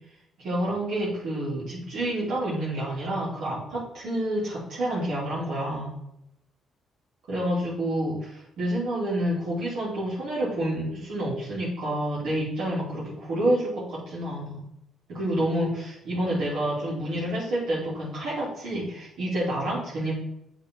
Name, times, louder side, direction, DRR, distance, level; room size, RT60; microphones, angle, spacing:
voice 1, 0.4-6.0 7.3-14.6 15.1-20.1, right 1 dB, 75° right, -9 dB, 2.8 m, -28 dB
8.4 x 3.9 x 4.4 m, 0.82 s
cardioid pair, 90°, 0 cm